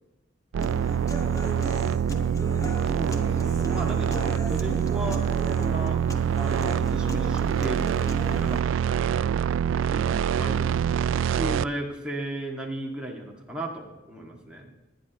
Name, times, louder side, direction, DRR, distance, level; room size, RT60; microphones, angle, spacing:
voice 1, 0.5-2.6 9.7-10.5, left 1 dB, 60° left, 0 dB, 1.7 m, -45 dB
sound 1, 0.5-11.6, right 8 dB, 90° right, 0.3 m, -25 dB
Human voice / Acoustic guitar, 0.6-8.6, equal, 15° left, 1.0 m, -37 dB
voice 2, 2.7-5.3 5.5-6.0 6.4-7.9 8.3-9.0 10.2-10.7 11.2-14.7, right 1 dB, 5° right, -2 dB, 1.9 m, -35 dB
sound 2, 6.1-12.0, right 2 dB, 45° right, 1.0 m, -54 dB
20.0 x 10.0 x 3.0 m, 1.1 s
head